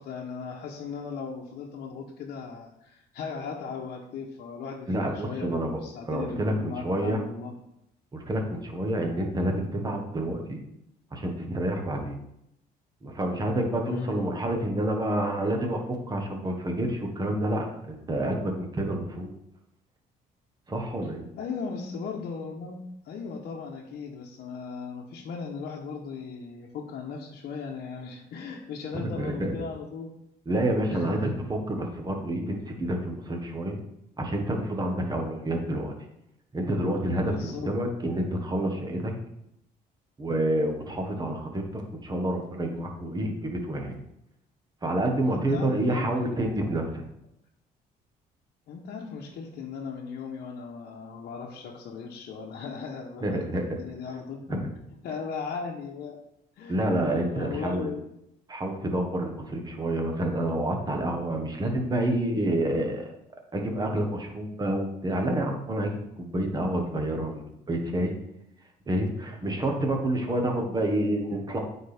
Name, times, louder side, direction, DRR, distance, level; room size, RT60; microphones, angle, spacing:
voice 1, 0.0-7.5 13.8-14.2 21.4-22.8 23.0-30.1 30.5-31.3 37.1-37.7 45.2-46.1 48.7-56.2 56.6-58.0, left 5 dB, 65° left, -3 dB, 1.0 m, -37 dB
voice 2, 4.9-5.8 6.0-7.2 8.1-10.6 11.1-12.2 13.0-19.3 20.7-21.3 28.9-29.5 30.5-33.8 34.2-35.9 36.5-39.1 40.2-44.0 44.8-47.0 53.2-53.6 54.5-54.7 56.7-57.9 58.5-63.1 63.5-68.1 68.9-71.6, right 1 dB, 25° right, 3 dB, 1.4 m, -28 dB
9.1 x 4.4 x 3.5 m, 0.80 s
cardioid pair, 110°, 17 cm